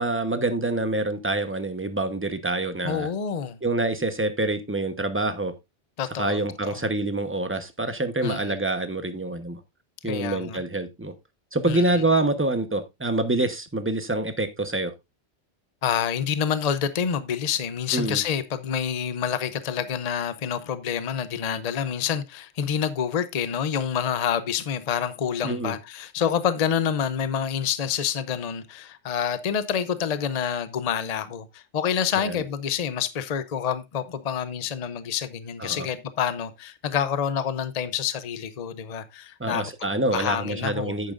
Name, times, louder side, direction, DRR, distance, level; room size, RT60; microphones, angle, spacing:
voice 1, 0.0-3.1 3.6-5.5 6.2-9.6 10.0-11.1 11.5-14.9 17.9-18.2 25.4-25.7 32.2-32.4 35.6-35.9 39.4-41.1, right 2 dB, 10° right, 0.9 m, -26 dB
voice 2, 2.8-3.6 6.0-6.8 8.2-8.6 10.0-10.6 11.7-12.0 15.8-39.7 40.1-40.9, left 8 dB, 40° left, 0.7 m, -27 dB
10.5 x 8.9 x 2.5 m
omnidirectional pair, 1.2 m